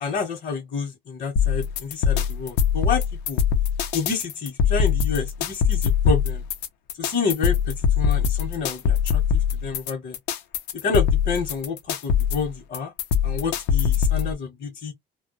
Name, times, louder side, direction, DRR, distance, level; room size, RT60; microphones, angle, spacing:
voice 1, 0.0-3.4 3.9-6.4 7.0-9.2 9.6-10.2 10.8-12.9 13.2-14.9, left 5 dB, 55° left, 0.9 m, -28 dB
sound 1, 1.4-14.3, left 7 dB, 90° left, 0.6 m, -22 dB
2.2 x 2.1 x 2.8 m
cardioid pair, 110°, 17 cm